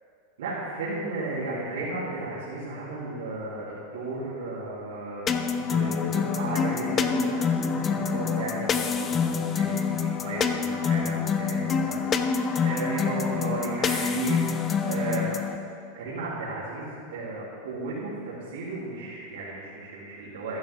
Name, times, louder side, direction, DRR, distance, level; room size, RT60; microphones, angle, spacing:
voice 1, 0.4-11.9 12.2-15.2 15.9-20.6, right 2 dB, 85° right, -10 dB, 3.6 m, -34 dB
sound 1, 5.3-15.6, left 6 dB, 30° left, 0.8 m, -26 dB
14.5 x 12.0 x 3.8 m, 2.4 s
hypercardioid pair, 110°, 0 cm